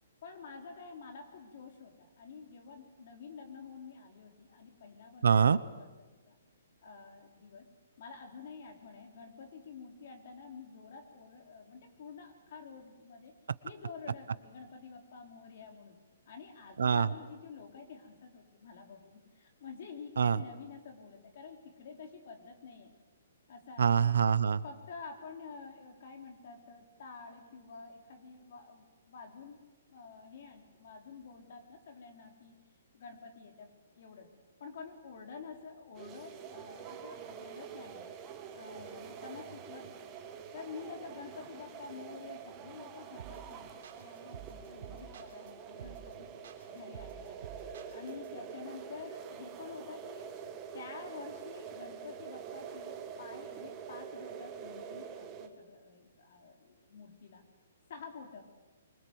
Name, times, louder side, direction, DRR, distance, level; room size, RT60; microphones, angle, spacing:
voice 1, 0.2-5.3 5.7-5.9 6.3-6.4 6.8-7.7 8.0-13.3 13.6-16.0 16.3-22.9 23.5-24.0 24.6-29.6 29.9-32.6 32.9-34.3 34.6-38.1 38.5-40.1 40.5-46.3 46.7-47.5 47.9-50.3 50.7-57.4 57.9-58.4, left 5 dB, 40° left, 4 dB, 3.8 m, -49 dB
voice 2, 5.2-5.6 16.8-17.1 20.2-20.4 23.8-24.6, right 7 dB, 80° right, 16 dB, 1.0 m, -24 dB
sound 1, 35.9-55.5, right 7 dB, 15° right, 1.4 m, -46 dB
sound 2, 43.2-43.5 43.8-45.5 45.8-46.1 46.4-48.3, right 8 dB, 40° right, 3.7 m, -49 dB
25.0 x 24.5 x 8.0 m, 1.3 s
hypercardioid pair, 175°, 0 cm